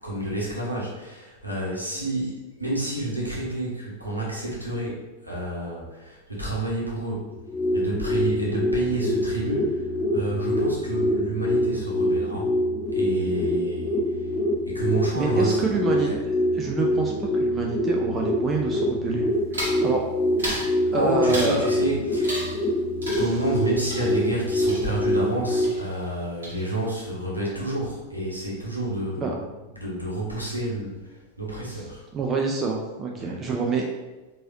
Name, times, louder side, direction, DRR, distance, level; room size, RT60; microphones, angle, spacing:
voice 1, 0.0-7.3 7.7-12.5 12.9-14.3 14.6-16.1 20.9-22.5 23.1-29.4 29.7-32.0 33.2-33.5, right 1 dB, 90° right, -5 dB, 1.1 m, -29 dB
sound 1, 7.3-25.7, left 1 dB, 20° left, 0.6 m, -25 dB
voice 2, 15.1-19.3 19.5-20.0 20.9-21.7 29.2-29.3 32.1-33.8, right 4 dB, 25° right, 0 dB, 0.5 m, -27 dB
sound 2, 19.5-19.8 20.4-20.7 21.3-21.7 22.2-22.7 23.0-25.3 25.6-26.2 26.4-27.0, equal, 70° right, 1.4 m, -34 dB
4.6 x 2.8 x 2.7 m, 1.1 s
figure-of-eight pair, 90°, 0 cm